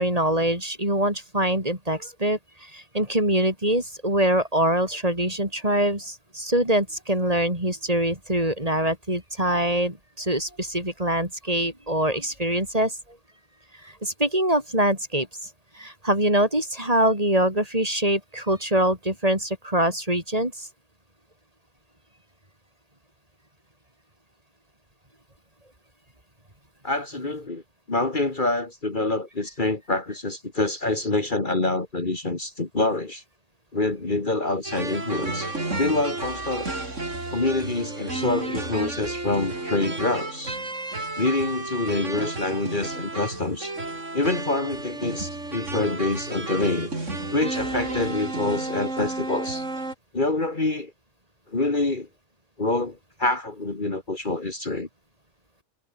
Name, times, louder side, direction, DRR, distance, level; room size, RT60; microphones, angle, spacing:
voice 1, 0.0-13.0 13.8-15.3 15.7-20.7, right 1 dB, 30° right, 5.7 m, -24 dB
voice 2, 26.8-27.6 27.9-33.2 33.7-35.5 35.8-36.7 37.3-40.6 41.2-43.7 44.1-46.9 47.3-49.6 50.1-50.9 51.5-52.1 52.6-54.9, left 2 dB, 40° left, 2.5 m, -26 dB
sound 1, 34.6-49.9, right 2 dB, 80° right, 4.9 m, -32 dB
omnidirectional pair, 1.3 m